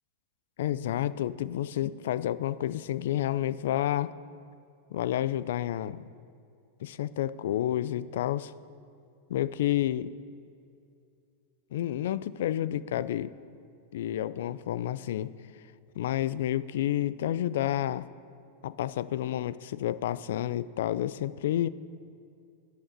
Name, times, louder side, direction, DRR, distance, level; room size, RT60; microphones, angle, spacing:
voice 1, 0.6-4.1 4.9-6.0 6.8-8.5 9.3-10.1 11.7-13.3 13.9-15.3 16.0-18.1 18.6-21.7, left 12 dB, 75° left, 17 dB, 0.3 m, -30 dB
11.0 x 6.4 x 6.6 m, 2.5 s
hypercardioid pair, 120°, 0 cm